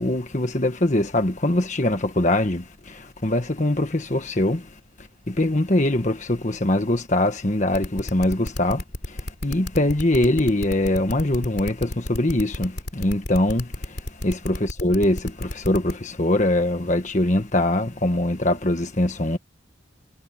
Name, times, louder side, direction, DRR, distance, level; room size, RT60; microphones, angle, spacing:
voice 1, 0.0-4.7 5.3-14.0 14.2-19.4, left 1 dB, 35° left, 1.5 m, -23 dB
sound 1, 7.7-15.9, left 1 dB, 55° left, 3.6 m, -31 dB
head